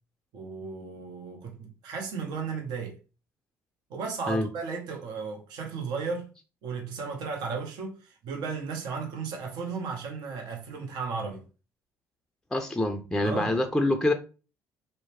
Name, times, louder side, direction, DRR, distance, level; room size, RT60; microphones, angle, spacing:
voice 1, 0.3-3.0 3.9-6.3 6.6-11.4 13.2-13.6, right 5 dB, 65° right, 0.8 m, -35 dB
voice 2, 12.5-14.1, left 1 dB, 5° left, 0.4 m, -26 dB
2.7 x 2.0 x 3.1 m
hypercardioid pair, 60°, 8 cm